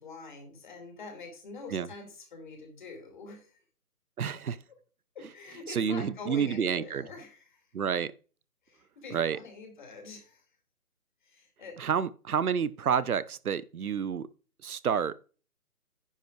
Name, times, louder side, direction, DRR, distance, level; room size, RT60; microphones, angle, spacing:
voice 1, 0.0-3.6 5.1-7.7 8.7-10.4 11.2-11.8, left 4 dB, 30° left, 2.5 m, -45 dB
voice 2, 4.2-4.6 5.7-7.1 7.7-8.1 9.1-9.4 11.8-14.3 14.6-15.2, right 7 dB, 70° right, 0.8 m, -29 dB
9.9 x 5.4 x 4.6 m
figure-of-eight pair, 160°, 45 cm